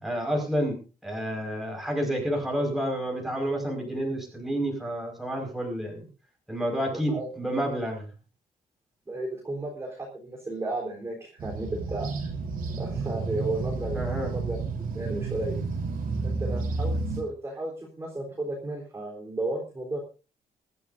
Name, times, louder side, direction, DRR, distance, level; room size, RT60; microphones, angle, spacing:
voice 1, 0.0-6.1 6.5-8.1 13.9-14.3, equal, ahead, 0 dB, 5.3 m, -29 dB
voice 2, 6.7-7.3 9.1-12.1 12.8-14.0 14.3-15.6 16.2-20.0, right 2 dB, 15° right, -2 dB, 3.7 m, -34 dB
sound 1, 11.4-17.2, right 4 dB, 70° right, 3.8 m, -31 dB
23.5 x 12.5 x 2.6 m, 0.33 s
wide cardioid pair, 175°, 16 cm